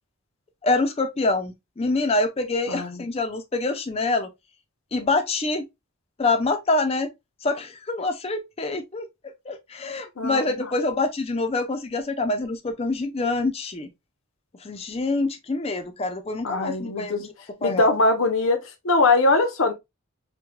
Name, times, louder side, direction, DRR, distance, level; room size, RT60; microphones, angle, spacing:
voice 1, 0.6-4.3 4.9-5.7 6.2-7.1 7.4-9.1 9.5-13.9 14.6-17.3 17.6-17.9, left 2 dB, 30° left, 0.5 m, -25 dB
voice 2, 2.7-3.0 10.2-10.7 16.4-17.3 17.6-18.6 18.8-19.7, left 2 dB, 75° left, 0.7 m, -21 dB
4.6 x 2.2 x 2.2 m
head